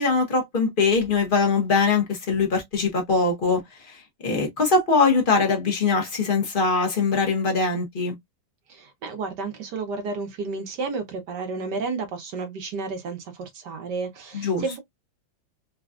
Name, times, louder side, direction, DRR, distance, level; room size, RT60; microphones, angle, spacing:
voice 1, 0.0-8.2 14.3-14.8, left 4 dB, 35° left, 0.8 m, -22 dB
voice 2, 8.7-14.8, right 4 dB, 65° right, 1.3 m, -31 dB
4.0 x 2.3 x 2.4 m
omnidirectional pair, 2.2 m